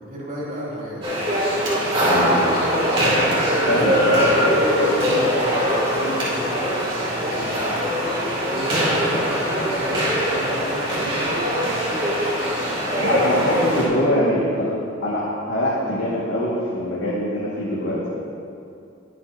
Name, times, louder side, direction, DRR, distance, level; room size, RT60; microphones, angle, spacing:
voice 1, 0.1-1.0 2.0-2.4 3.6-4.3 4.8-5.4 5.7-7.6 8.4-11.5 14.6-14.7, equal, 40° right, -7 dB, 2.9 m, -33 dB
sound 1, 1.0-13.8, equal, 25° right, 3.0 m, -21 dB
voice 2, 2.0-2.5 3.7-4.2 13.0-14.7 15.0-18.1, left 1 dB, 75° left, -8 dB, 1.9 m, -23 dB
21.0 x 7.7 x 2.8 m, 2.5 s
head